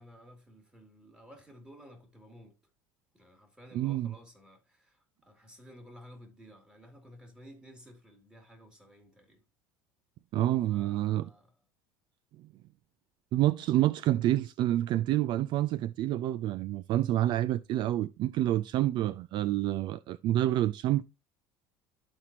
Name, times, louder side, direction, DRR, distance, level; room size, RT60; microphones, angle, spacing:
voice 1, 0.0-2.6 3.1-9.4 10.7-11.6 13.8-14.1, equal, 10° right, 2.7 m, -54 dB
voice 2, 3.7-4.1 10.3-11.3 13.3-21.0, right 14 dB, 55° right, 0.4 m, -28 dB
12.5 x 4.3 x 2.8 m
supercardioid pair, 100°, 9 cm